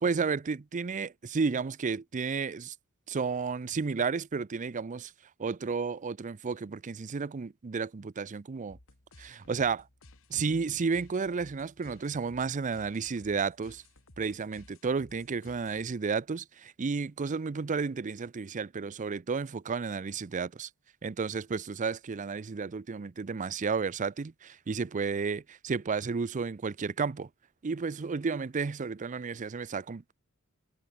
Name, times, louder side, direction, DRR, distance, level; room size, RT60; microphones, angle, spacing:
voice 1, 0.0-2.7 3.1-5.1 5.4-8.8 9.2-9.9 10.3-13.8 14.2-20.7 21.0-27.3 27.6-30.1, right 5 dB, 35° right, 0.5 m, -32 dB
sound 1, 8.7-16.1, left 2 dB, 65° left, 3.3 m, -57 dB
head